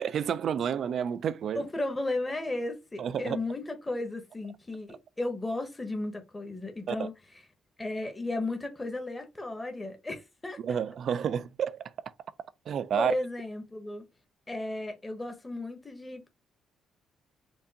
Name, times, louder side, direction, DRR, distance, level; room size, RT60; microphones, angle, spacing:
voice 1, 0.0-1.6 3.0-3.4 6.9-7.1 10.6-11.9 12.7-13.1, right 8 dB, 60° right, 0.3 m, -30 dB
voice 2, 1.5-7.1 7.8-10.8 12.9-14.1 14.5-16.3, left 2 dB, 20° left, 0.9 m, -34 dB
4.5 x 2.5 x 2.8 m
cardioid pair, 90°, 0 cm